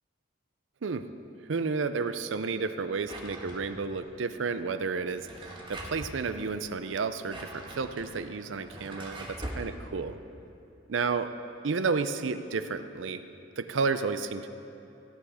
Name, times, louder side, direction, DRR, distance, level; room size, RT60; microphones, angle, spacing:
voice 1, 1.5-10.2 10.9-11.3 11.6-13.2 13.6-14.5, right 4 dB, 85° right, 11 dB, 0.5 m, -31 dB
Drawer open or close, 3.0-4.0 5.1-6.2 7.0-9.7, right 1 dB, 25° right, 1.4 m, -42 dB
15.5 x 8.7 x 4.9 m, 2.8 s
head